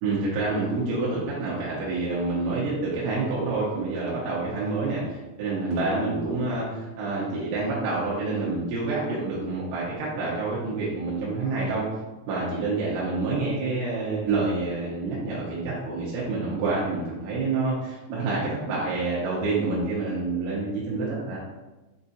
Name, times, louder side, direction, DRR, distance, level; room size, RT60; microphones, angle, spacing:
voice 1, 0.0-11.8 12.3-21.4, right 3 dB, 90° right, -7 dB, 3.1 m, -27 dB
7.1 x 2.7 x 2.3 m, 1.1 s
omnidirectional pair, 5.3 m